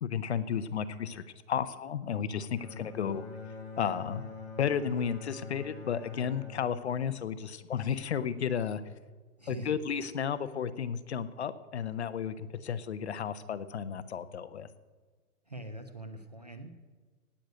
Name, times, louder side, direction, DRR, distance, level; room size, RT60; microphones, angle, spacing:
voice 1, 0.0-3.3 3.8-4.2 4.6-8.8 9.5-14.7, left 7 dB, 45° left, 13 dB, 0.7 m, -33 dB
Bowed string instrument, 2.6-8.0, left 4 dB, 10° left, 2.4 m, -45 dB
voice 2, 9.4-9.7 15.5-16.7, right 1 dB, 30° right, 8 dB, 0.4 m, -42 dB
17.5 x 6.4 x 9.1 m, 1.4 s
hypercardioid pair, 180°, 45 cm